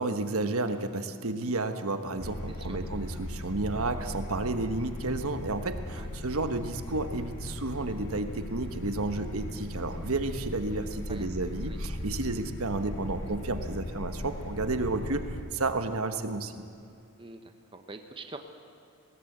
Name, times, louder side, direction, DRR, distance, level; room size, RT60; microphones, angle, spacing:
voice 1, 0.0-16.5, right 2 dB, 70° right, 8 dB, 1.2 m, -32 dB
sound 1, 2.2-15.4, left 1 dB, 60° left, 1.7 m, -38 dB
voice 2, 17.7-18.4, right 3 dB, 25° right, 6 dB, 1.1 m, -44 dB
21.0 x 17.5 x 8.0 m, 2.6 s
head